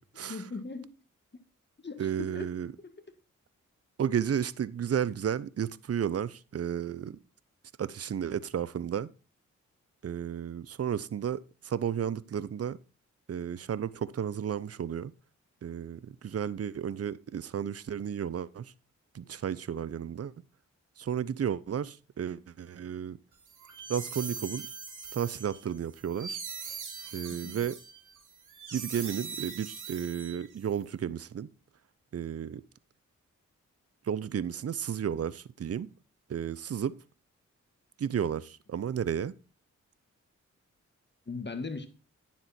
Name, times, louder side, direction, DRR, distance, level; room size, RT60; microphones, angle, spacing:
voice 1, 0.3-0.9 1.8-2.5 2.8-2.9 27.3-27.7 41.3-41.9, left 4 dB, 35° left, 1.7 m, -39 dB
voice 2, 2.0-2.7 4.0-7.2 7.8-9.1 10.0-12.8 13.3-15.1 15.6-18.7 19.1-20.3 21.0-23.2 23.9-24.7 25.1-26.4 27.1-27.8 28.7-31.5 32.1-32.6 34.0-35.9 36.3-37.0 38.0-39.3, right 8 dB, 50° right, 0.6 m, -33 dB
sound 1, 23.5-30.7, right 5 dB, 90° right, 2.6 m, -42 dB
9.7 x 7.3 x 4.2 m
cardioid pair, 50°, 30 cm